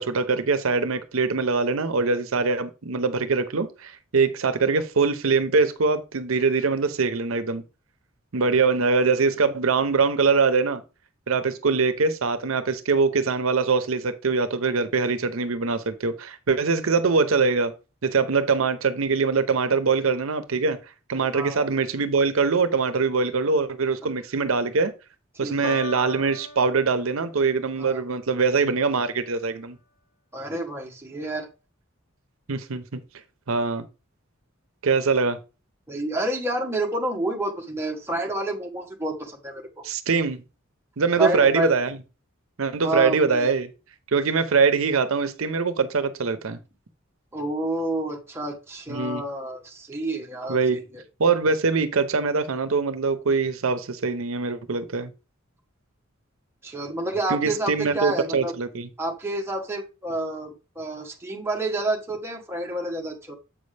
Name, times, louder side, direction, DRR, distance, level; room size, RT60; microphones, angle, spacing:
voice 1, 0.0-7.6 8.3-10.8 11.3-17.7 18.0-20.8 21.1-24.9 25.4-29.8 32.5-33.0 33.5-33.8 34.8-35.4 39.8-40.4 41.0-42.0 42.6-43.7 44.1-46.6 48.9-49.2 50.5-50.8 51.2-55.1 57.3-58.9, right 4 dB, 85° right, 0.7 m, -23 dB
voice 2, 21.3-21.7 25.4-25.8 27.8-28.0 30.3-31.5 35.9-39.8 41.2-41.7 42.8-43.5 47.3-51.0 56.6-58.5 59.0-63.4, right 2 dB, 10° right, 1.1 m, -29 dB
Piano, 25.6-27.6, left 2 dB, 60° left, 1.2 m, -37 dB
7.5 x 5.3 x 3.3 m
head